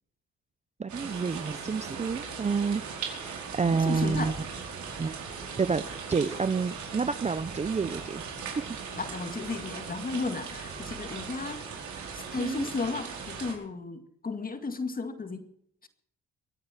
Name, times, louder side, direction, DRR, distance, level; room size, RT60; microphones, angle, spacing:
voice 1, 0.8-4.3 5.0-8.2 8.6-8.8 12.4-12.7, right 5 dB, 25° right, 14 dB, 0.6 m, -29 dB
sound 1, 0.9-13.5, right 5 dB, 70° right, 4.9 m, -39 dB
voice 2, 3.7-4.5 9.0-11.6 12.1-15.5 15.8-15.9, left 3 dB, 30° left, 8 dB, 2.1 m, -34 dB
24.0 x 8.7 x 6.0 m, 0.68 s
cardioid pair, 90°, 30 cm